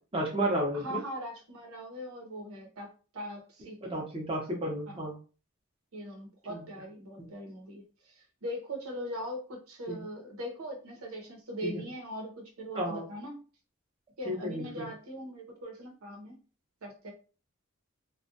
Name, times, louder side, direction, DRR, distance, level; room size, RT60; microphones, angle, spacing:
voice 1, 0.1-1.0 3.8-5.1 6.5-6.6 9.9-10.0 11.6-11.8 12.8-13.0 14.3-14.8, right 1 dB, 25° right, -1 dB, 0.6 m, -32 dB
voice 2, 0.7-4.0 4.9-5.0 5.9-13.4 14.2-16.4 16.8-17.1, equal, 90° right, 1 dB, 0.8 m, -41 dB
2.3 x 2.2 x 2.6 m, 0.36 s
head